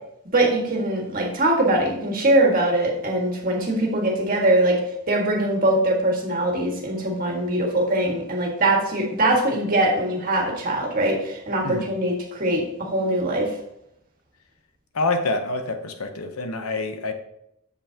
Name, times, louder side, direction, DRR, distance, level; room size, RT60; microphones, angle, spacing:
voice 1, 0.3-4.8 5.1-13.5, right 1 dB, 40° right, -1 dB, 1.7 m, -22 dB
voice 2, 14.9-17.1, left 2 dB, 85° left, 7 dB, 0.8 m, -26 dB
7.9 x 7.1 x 2.8 m, 0.78 s
head